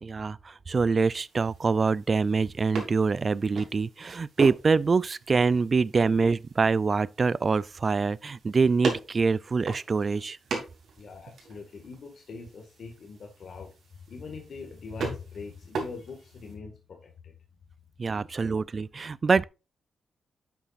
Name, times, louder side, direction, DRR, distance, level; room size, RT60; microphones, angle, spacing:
voice 1, 0.0-10.4 18.0-19.4, right 4 dB, 35° right, 0.3 m, -25 dB
sound 1, 1.0-16.5, right 4 dB, 70° right, 2.9 m, -40 dB
voice 2, 11.0-13.7 14.1-17.3, left 4 dB, 55° left, 1.8 m, -42 dB
10.5 x 7.1 x 2.5 m
wide cardioid pair, 145°, 0 cm